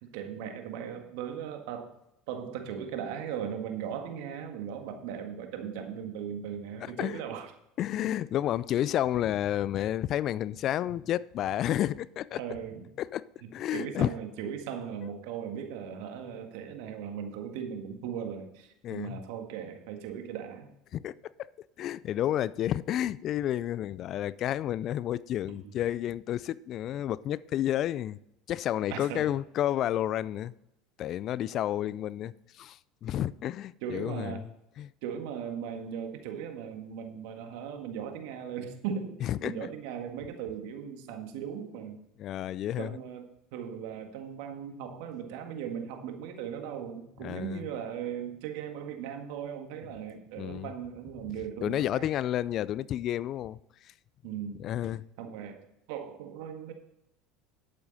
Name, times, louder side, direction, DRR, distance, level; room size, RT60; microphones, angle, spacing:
voice 1, 0.0-1.9 2.3-7.5 12.4-12.9 13.4-20.7 25.5-25.7 28.9-29.3 33.8-34.5 35.0-42.0 42.8-52.1 54.2-54.6 55.2-55.6 55.9-56.7, right 8 dB, 70° right, 1.7 m, -38 dB
voice 2, 6.8-7.2 7.8-12.4 13.0-13.3 13.5-14.1 15.0-15.1 18.8-19.2 20.9-21.3 21.8-28.2 28.5-30.5 31.0-34.5 34.8-34.9 39.2-39.7 42.2-43.0 47.2-47.6 50.4-50.7 51.6-53.6 54.6-55.0, left 12 dB, 50° left, 0.4 m, -31 dB
10.5 x 8.8 x 4.1 m
hypercardioid pair, 80°, 0 cm